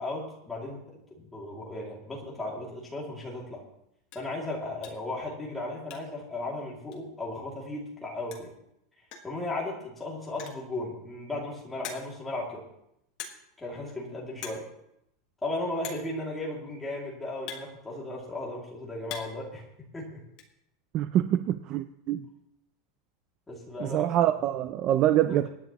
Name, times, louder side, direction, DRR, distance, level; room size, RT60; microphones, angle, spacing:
voice 1, 0.0-3.6 4.1-8.5 9.2-12.6 13.6-14.7 15.4-19.6 19.9-20.2 23.5-24.1 25.3-25.5, left 2 dB, 5° left, -4 dB, 2.5 m, -36 dB
sound 1, 4.1-4.3 4.8-5.1 5.4-6.3 6.5-6.6 6.9-7.0 8.0-8.1 8.3-8.6 9.1-9.4 10.2-10.7 11.3-11.4 11.8-12.3 13.2-13.6 13.9-14.1 14.3-14.7 14.9-15.0 15.8-16.2 17.0-18.3 18.7-19.5 19.7-20.5, left 7 dB, 35° left, 1.6 m, -43 dB
voice 2, 20.9-22.2 23.8-25.5, right 12 dB, 25° right, 11 dB, 0.4 m, -25 dB
24.5 x 9.8 x 3.0 m, 0.78 s
supercardioid pair, 180°, 2 cm